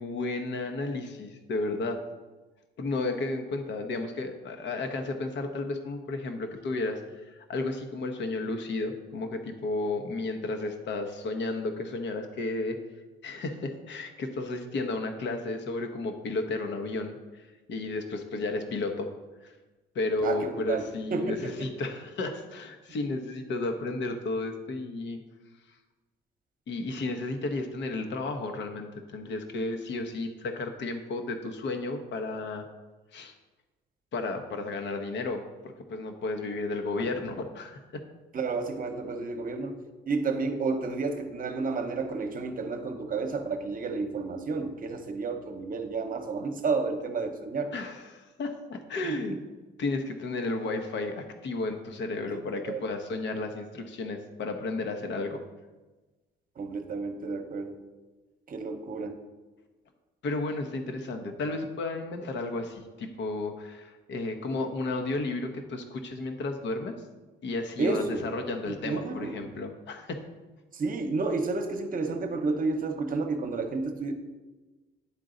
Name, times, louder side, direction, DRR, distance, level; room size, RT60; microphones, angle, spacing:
voice 1, 0.0-2.0 2.8-12.8 13.2-19.1 19.4-19.5 19.9-25.2 26.7-32.6 33.1-33.3 34.1-38.0 47.7-49.4 49.8-55.4 60.2-66.9 67.4-70.2, left 2 dB, 65° left, 5 dB, 0.9 m, -33 dB
voice 2, 20.2-20.8 21.1-21.7 38.3-39.8 40.1-47.7 49.0-49.4 52.3-52.4 52.7-52.8 56.6-57.8 58.5-59.2 67.8-68.2 68.8-69.4 70.7-74.1, right 4 dB, 45° right, 6 dB, 0.9 m, -31 dB
10.0 x 3.9 x 3.8 m, 1.2 s
cardioid pair, 90°, 20 cm